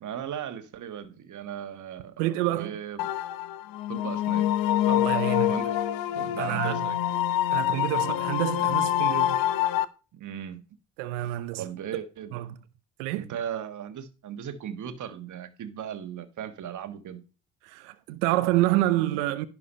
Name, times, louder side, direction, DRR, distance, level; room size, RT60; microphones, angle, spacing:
voice 1, 0.0-3.1 3.9-4.5 5.5-5.7 6.2-7.2 10.1-10.6 11.6-12.4 13.1-17.2, right 9 dB, 55° right, 1.5 m, -37 dB
voice 2, 2.2-2.8 4.9-5.6 6.2-6.9 7.5-9.5 11.0-11.6 12.3-12.6 13.0-13.3 17.6-19.5, right 15 dB, 80° right, 0.7 m, -28 dB
sound 1, 3.0-9.8, left 12 dB, 70° left, 0.8 m, -26 dB
11.0 x 4.8 x 5.4 m
hypercardioid pair, 55°, 36 cm